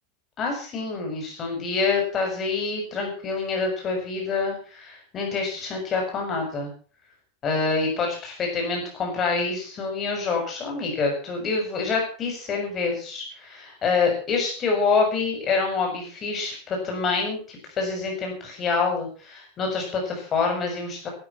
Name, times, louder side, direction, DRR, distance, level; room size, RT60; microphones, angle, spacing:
voice 1, 0.4-6.7 7.4-21.1, left 4 dB, 20° left, 1 dB, 6.6 m, -26 dB
15.0 x 13.0 x 5.9 m, 0.41 s
supercardioid pair, 180°, 0 cm